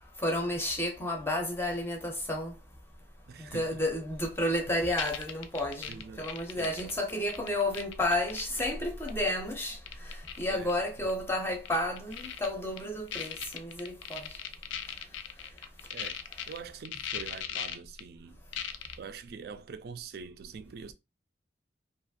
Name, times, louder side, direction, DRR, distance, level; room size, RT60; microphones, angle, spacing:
voice 1, 0.2-2.5 3.5-9.8 10.4-14.3, left 1 dB, 15° left, 0.5 m, -31 dB
voice 2, 3.3-3.8 5.9-7.0 10.5-10.7 15.9-16.2 16.5-18.4 19.0-20.9, right 5 dB, 55° right, 0.3 m, -44 dB
sound 1, 4.9-8.7 9.1-9.3 9.6-10.4 10.7-10.8 11.1-11.2 11.7-12.5 12.8-12.9 13.1-16.6 16.9-18.0 18.5-19.0, left 9 dB, 90° left, 0.4 m, -38 dB
2.5 x 2.4 x 2.6 m
head